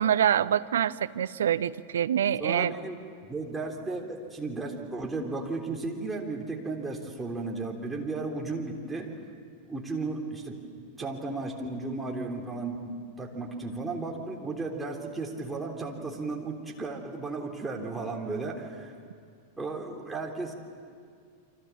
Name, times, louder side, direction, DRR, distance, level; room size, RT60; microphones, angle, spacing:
voice 1, 0.0-2.7, right 9 dB, 65° right, 14 dB, 0.6 m, -25 dB
voice 2, 2.4-9.1 9.7-10.6 11.0-18.9 19.6-20.5, right 3 dB, 10° right, 0 dB, 3.4 m, -34 dB
30.0 x 24.5 x 7.2 m, 2.1 s
figure-of-eight pair, 90°, 0 cm